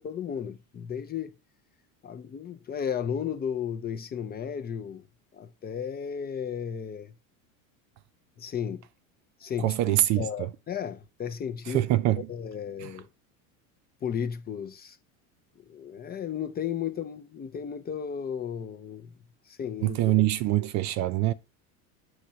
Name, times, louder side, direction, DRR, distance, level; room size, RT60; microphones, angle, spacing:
voice 1, 0.0-1.3 2.0-5.0 5.3-7.1 8.4-8.9 9.4-11.8 12.3-13.1 14.0-15.0 15.7-19.1 19.5-20.0, left 8 dB, 25° left, 0.5 m, -34 dB
voice 2, 9.6-10.5 11.7-12.3 12.8-12.9 19.8-21.3, right 14 dB, 40° right, 0.5 m, -24 dB
6.3 x 3.1 x 5.6 m
supercardioid pair, 110°, 43 cm